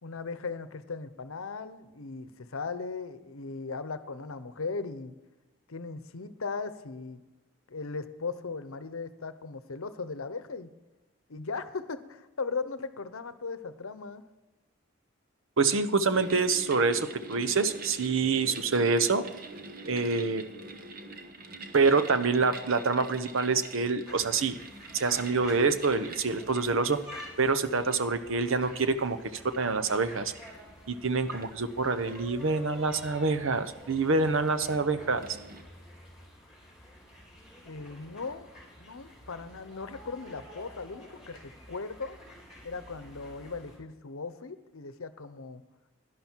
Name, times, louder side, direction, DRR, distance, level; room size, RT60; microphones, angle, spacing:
voice 1, 0.0-5.1 5.7-7.2 7.7-10.7 11.3-14.3 37.6-38.5 38.8-42.2 42.6-45.6, left 4 dB, 80° left, 13 dB, 0.8 m, -38 dB
voice 2, 15.6-19.2 19.9-20.4 21.7-24.6 24.9-27.0 27.4-29.2 29.4-30.3 30.9-35.3, right 4 dB, 70° right, 10 dB, 0.8 m, -26 dB
sound 1, 16.1-35.6, right 3 dB, 45° right, 1.0 m, -47 dB
sound 2, 24.0-43.8, left 1 dB, 5° right, 4.1 m, -50 dB
11.5 x 11.0 x 4.5 m, 1.1 s
head